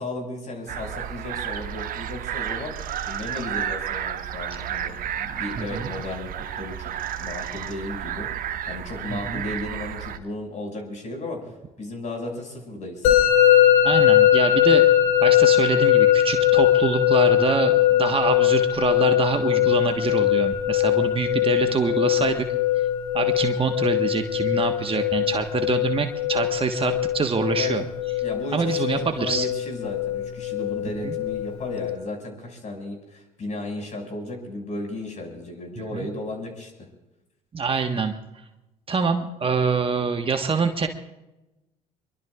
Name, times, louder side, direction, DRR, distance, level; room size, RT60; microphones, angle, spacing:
voice 1, 0.0-2.7 3.1-6.9 7.2-8.3 8.7-11.4 11.8-13.1 27.5-27.7 28.2-36.7, left 2 dB, 40° left, 2 dB, 6.0 m, -34 dB
sound 1, 0.7-10.2, right 10 dB, 50° right, 1.1 m, -32 dB
voice 2, 5.6-5.9 9.1-9.4 13.8-14.9 15.2-22.4 23.1-27.9 28.5-29.5 31.0-31.1 35.9-36.1 37.5-38.1 38.9-40.9, right 5 dB, 30° right, 6 dB, 1.4 m, -25 dB
Musical instrument, 13.0-31.9, left 12 dB, 65° left, 3.5 m, -21 dB
24.5 x 23.0 x 2.4 m, 0.98 s
hypercardioid pair, 60°, 19 cm